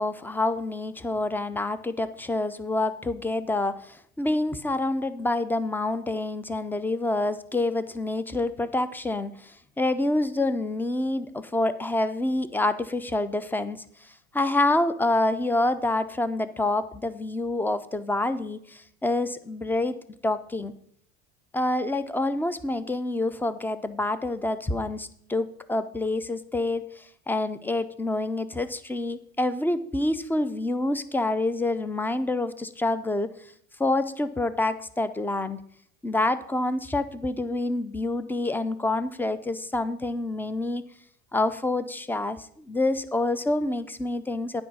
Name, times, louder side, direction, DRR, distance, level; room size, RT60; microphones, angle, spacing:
voice 1, 0.0-13.8 14.3-20.0 20.2-20.7 21.5-33.3 33.8-35.6 36.0-40.8 41.3-44.6, left 2 dB, 5° left, 13 dB, 0.3 m, -27 dB
9.1 x 4.8 x 5.8 m, 0.66 s
supercardioid pair, 95°, 40 cm